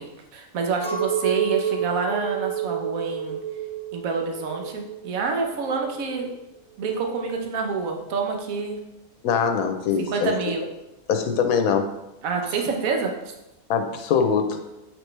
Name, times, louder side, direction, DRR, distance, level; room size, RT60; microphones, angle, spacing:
voice 1, 0.0-3.4 3.9-6.3 6.8-8.8 10.1-10.7 12.2-13.1, right 5 dB, 70° right, 2 dB, 1.2 m, -27 dB
Chink clink, 0.8-6.3, right 8 dB, 25° left, 0.7 m, -29 dB
voice 2, 9.2-10.3 11.1-11.9 13.7-14.6, left 6 dB, 80° left, 6 dB, 1.1 m, -22 dB
7.8 x 4.5 x 3.3 m, 0.95 s
omnidirectional pair, 1.5 m